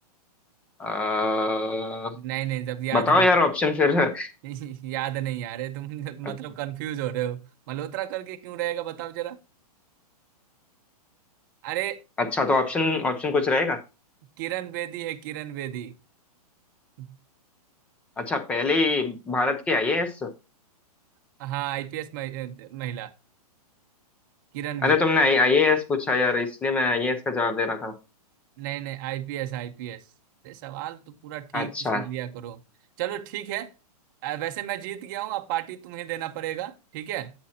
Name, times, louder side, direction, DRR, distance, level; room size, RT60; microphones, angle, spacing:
voice 1, 0.8-2.1 2.9-4.3 12.2-13.8 18.2-20.3 24.8-28.0 31.5-32.0, left 3 dB, 5° left, 0.4 m, -23 dB
voice 2, 2.1-3.3 4.4-7.4 7.7-9.4 11.6-12.0 14.4-15.9 17.0-17.1 21.4-23.1 24.5-25.0 28.6-30.0 30.4-32.6 33.0-33.7 34.2-37.3, right 13 dB, 30° right, 0.7 m, -32 dB
8.3 x 7.6 x 2.8 m
hypercardioid pair, 165°, 20 cm